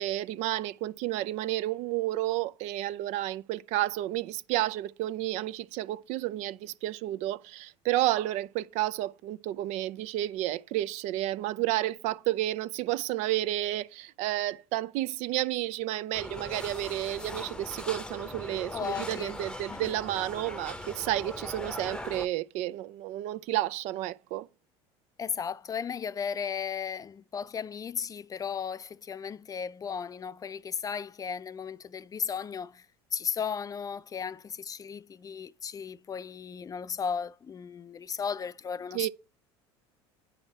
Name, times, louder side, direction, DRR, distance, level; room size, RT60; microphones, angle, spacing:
voice 1, 0.0-24.5 38.9-39.1, right 15 dB, 60° right, 0.4 m, -31 dB
sound 1, 16.1-22.3, left 1 dB, 5° left, 0.8 m, -40 dB
voice 2, 18.7-19.3 19.7-19.9 25.2-32.9 33.1-39.1, left 7 dB, 25° left, 0.4 m, -35 dB
8.7 x 5.0 x 4.2 m
hypercardioid pair, 80°, 13 cm